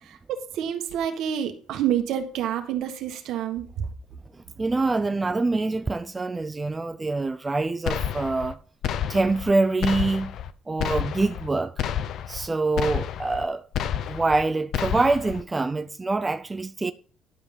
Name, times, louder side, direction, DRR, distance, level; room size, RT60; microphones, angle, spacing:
voice 1, 0.0-3.8, right 10 dB, 75° right, 1.5 m, -28 dB
voice 2, 4.6-8.6 9.1-10.4 10.7-11.7 12.3-13.6 14.1-16.9, right 3 dB, 20° right, 0.5 m, -25 dB
sound 1, 7.9-8.5 8.8-9.5 9.8-10.5 10.8-11.5 11.8-12.5 12.8-13.5 13.7-14.4 14.7-15.4, left 9 dB, 65° left, 0.7 m, -30 dB
11.0 x 5.3 x 5.5 m
cardioid pair, 100°, 0 cm